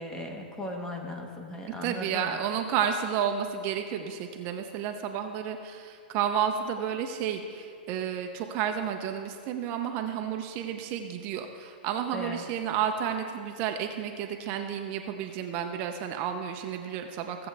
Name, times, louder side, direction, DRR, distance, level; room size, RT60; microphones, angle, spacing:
voice 1, 0.0-2.4 12.1-12.4, left 1 dB, 10° left, 2 dB, 1.1 m, -37 dB
voice 2, 1.8-17.5, right 8 dB, 35° right, 5 dB, 0.6 m, -31 dB
16.0 x 7.7 x 3.3 m, 2.4 s
hypercardioid pair, 135°, 6 cm